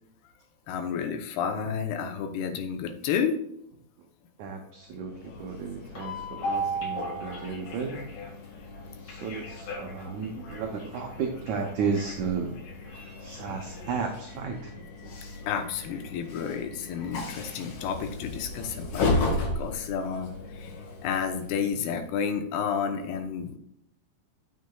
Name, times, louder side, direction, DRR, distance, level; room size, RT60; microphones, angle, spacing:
voice 1, 0.7-3.4 15.5-19.2 19.6-23.6, left 7 dB, 85° left, 5 dB, 3.0 m, -31 dB
voice 2, 4.4-8.1 9.0-12.6 13.2-14.8 15.0-15.1, right 5 dB, 75° right, 3 dB, 1.8 m, -33 dB
Train, 4.9-22.2, left 1 dB, 60° left, 3.1 m, -35 dB
9.4 x 6.9 x 2.3 m, 0.74 s
omnidirectional pair, 4.5 m